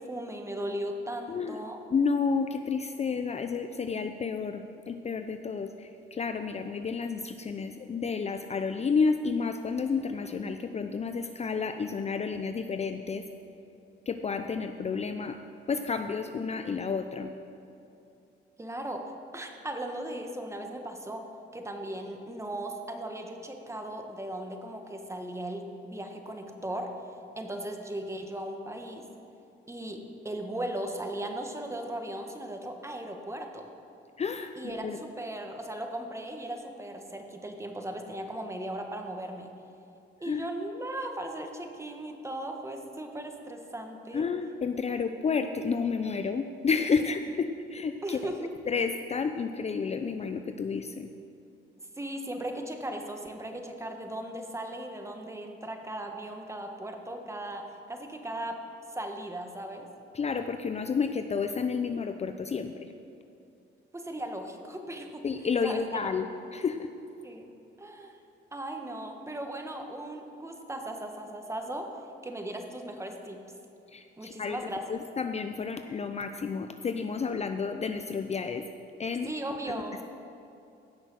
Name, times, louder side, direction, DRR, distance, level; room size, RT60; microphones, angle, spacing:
voice 1, 0.0-1.8 18.6-19.0 19.3-21.2 21.5-26.9 27.4-29.1 29.7-33.7 34.5-39.5 40.2-44.3 48.0-48.5 52.0-58.6 58.9-59.9 63.9-65.2 65.6-66.1 67.2-67.5 67.8-68.2 68.5-71.9 72.2-73.4 74.2-75.0 79.2-80.0, right 1 dB, 15° right, 4 dB, 1.5 m, -37 dB
voice 2, 1.9-13.3 14.1-15.4 15.7-17.3 34.2-35.0 40.2-40.5 44.1-48.3 48.7-51.1 60.1-62.9 65.2-66.9 73.9-78.7 79.0-79.3, left 5 dB, 35° left, 8 dB, 0.5 m, -31 dB
16.5 x 6.2 x 6.3 m, 2.7 s
cardioid pair, 90°, 20 cm